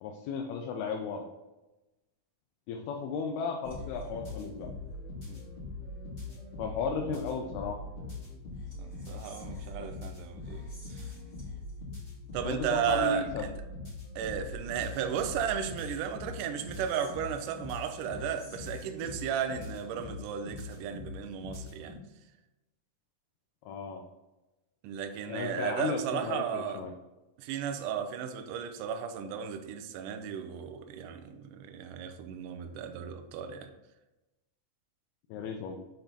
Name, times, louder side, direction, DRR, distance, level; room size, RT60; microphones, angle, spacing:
voice 1, 0.0-1.3 2.7-4.7 6.6-7.8 9.8-9.9 12.4-13.5 23.7-24.0 25.3-26.9 35.3-35.7, left 5 dB, 85° left, 2.5 m, -35 dB
sound 1, 3.6-21.9, left 3 dB, 25° left, 1.9 m, -42 dB
voice 2, 8.8-10.7 10.9-11.0 12.3-13.5 14.2-22.0 24.8-26.8 27.4-33.7, right 8 dB, 85° right, 1.9 m, -34 dB
6.7 x 4.4 x 4.0 m
omnidirectional pair, 4.3 m